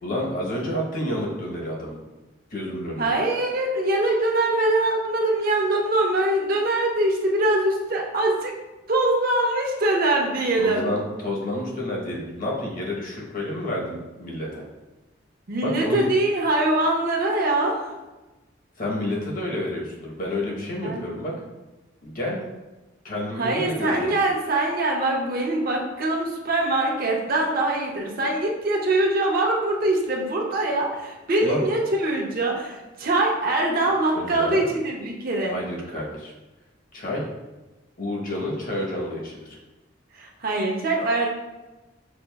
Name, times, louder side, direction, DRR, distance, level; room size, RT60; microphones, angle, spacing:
voice 1, 0.0-2.0 2.5-3.1 10.6-14.7 15.6-16.1 18.8-21.3 22.0-22.4 23.0-24.1 31.4-31.6 34.1-34.6 35.5-36.3 36.9-37.2 38.0-39.6, left 1 dB, 45° left, -3 dB, 0.9 m, -29 dB
voice 2, 3.0-8.5 8.9-10.8 15.5-17.9 20.8-21.1 23.3-35.6 40.2-41.3, right 2 dB, 50° right, 0 dB, 0.6 m, -23 dB
6.2 x 2.4 x 2.2 m, 1.1 s
head